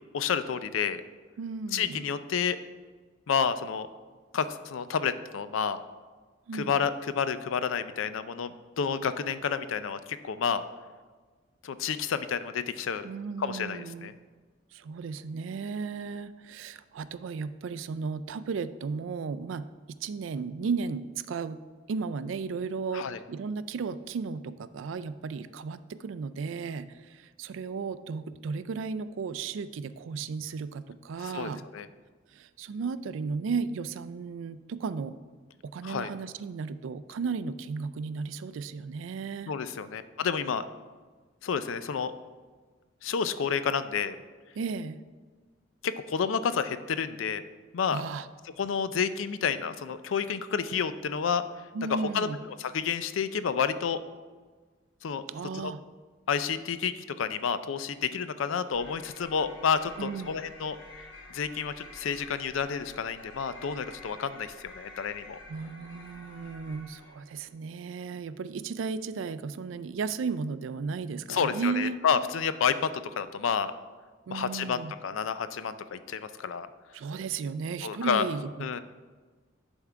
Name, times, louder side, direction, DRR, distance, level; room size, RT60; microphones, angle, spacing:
voice 1, 0.1-1.0 1.7-2.6 3.3-3.9 4.3-5.8 6.5-10.6 11.6-13.1 13.4-14.1 22.9-23.2 31.2-31.9 35.8-36.1 39.5-40.6 41.4-42.1 43.0-44.2 45.8-47.4 47.7-48.0 48.6-51.5 51.9-54.0 55.0-55.2 55.5-55.7 56.3-60.8 61.3-65.4 71.3-72.9 73.2-73.7 74.3-76.7 77.8-78.3 78.6-78.8, left 6 dB, 90° left, 13 dB, 0.4 m, -30 dB
voice 2, 1.4-2.1 6.5-6.9 13.0-14.2 14.7-21.6 21.9-31.7 32.3-35.2 35.6-39.5 44.6-45.0 47.9-48.3 51.7-52.4 55.3-55.8 60.0-60.3 65.5-72.0 74.3-74.9 76.9-78.8, right 5 dB, 80° right, 13 dB, 0.4 m, -35 dB
sound 1, 58.7-67.3, left 2 dB, 70° left, 1.3 m, -49 dB
11.0 x 3.6 x 4.5 m, 1.4 s
head